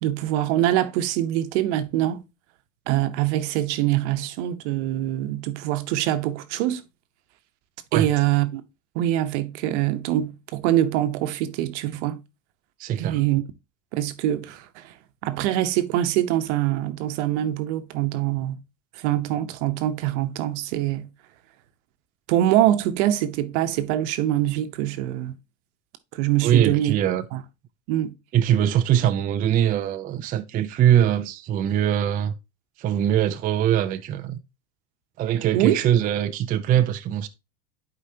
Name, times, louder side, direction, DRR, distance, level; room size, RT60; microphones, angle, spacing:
voice 1, 0.0-2.2 2.9-6.8 7.9-8.6 8.9-12.2 13.0-13.4 13.9-14.9 15.2-18.6 18.9-21.1 22.3-25.4 26.1-27.0 27.3-27.4 27.9-28.1 35.3-35.7, right 13 dB, 70° right, 1.0 m, -24 dB
voice 2, 12.8-13.2 26.4-27.2 28.3-32.3 32.8-34.4 35.2-37.3, right 10 dB, 25° right, 0.4 m, -22 dB
11.0 x 4.8 x 2.8 m
supercardioid pair, 150°, 36 cm